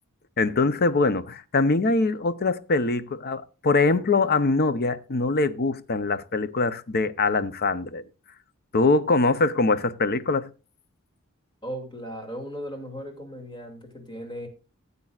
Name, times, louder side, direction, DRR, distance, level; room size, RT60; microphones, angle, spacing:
voice 1, 0.4-8.0 8.7-10.5, left 3 dB, 45° left, 0.7 m, -23 dB
voice 2, 11.6-14.5, equal, 20° left, 2.6 m, -37 dB
16.5 x 8.3 x 2.4 m
head